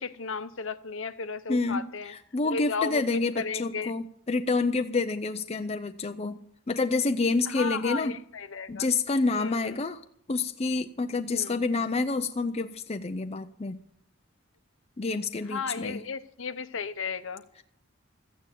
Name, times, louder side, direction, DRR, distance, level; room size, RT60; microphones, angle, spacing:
voice 1, 0.0-2.1 2.5-3.0 3.4-3.9 7.5-8.9 9.3-9.8 11.3-11.6 15.5-17.4, left 5 dB, 65° left, 0.9 m, -34 dB
voice 2, 1.5-6.4 6.7-8.2 8.7-10.0 10.3-13.8 15.0-16.0, left 3 dB, 30° left, 0.5 m, -28 dB
14.0 x 9.1 x 8.3 m
head